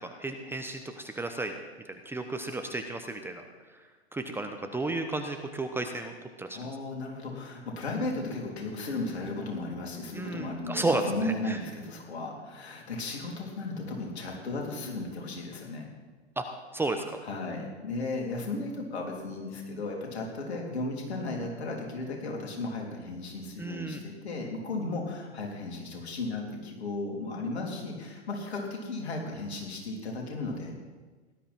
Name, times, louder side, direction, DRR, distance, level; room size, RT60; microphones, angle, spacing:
voice 1, 0.0-1.5 1.8-3.4 4.1-6.6 10.1-11.6 16.4-16.5 16.7-17.0 23.6-24.0, right 2 dB, 5° right, 6 dB, 0.8 m, -33 dB
voice 2, 6.5-15.8 17.2-30.7, left 2 dB, 70° left, 0 dB, 3.4 m, -35 dB
18.0 x 11.5 x 4.3 m, 1.3 s
figure-of-eight pair, 105°, 34 cm